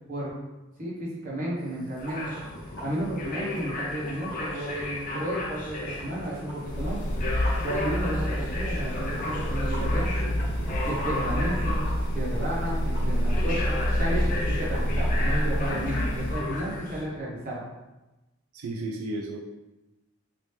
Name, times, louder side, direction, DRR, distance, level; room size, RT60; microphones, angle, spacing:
voice 1, 0.8-2.4 2.8-7.0 7.6-10.1 10.9-11.8 12.1-17.6, right 1 dB, 40° right, -6 dB, 1.1 m, -32 dB
sound 1, 1.6-17.0, equal, 65° left, 1.2 m, -47 dB
sound 2, 2.0-17.0, left 2 dB, 35° left, 0.5 m, -35 dB
sound 3, 6.6-16.5, equal, 90° left, 0.5 m, -28 dB
voice 2, 18.5-19.4, right 2 dB, 85° right, 0 dB, 0.4 m, -33 dB
2.9 x 2.7 x 3.3 m, 1.0 s
head